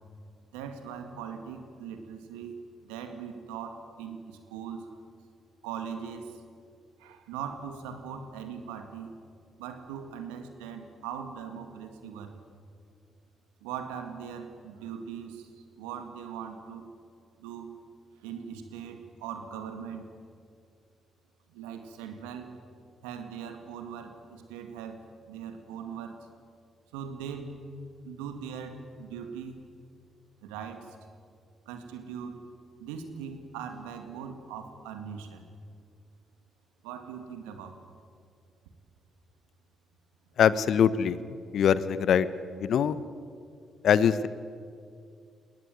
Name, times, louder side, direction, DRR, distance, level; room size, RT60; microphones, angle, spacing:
voice 1, 0.5-2.6 2.8-4.9 5.6-6.3 7.0-9.1 9.6-12.3 13.6-15.5 15.8-16.9 17.4-17.7 18.2-20.1 21.5-22.5 23.0-26.3 26.9-27.6 28.0-29.6 30.4-30.9 31.7-32.4 32.8-35.4 36.8-37.8, right 7 dB, 80° right, 7 dB, 2.1 m, -40 dB
voice 2, 40.4-41.2 41.5-42.3 42.6-43.0 43.8-44.3, left 8 dB, 65° left, 16 dB, 0.9 m, -22 dB
21.5 x 18.5 x 9.4 m, 2.2 s
hypercardioid pair, 45°, 0 cm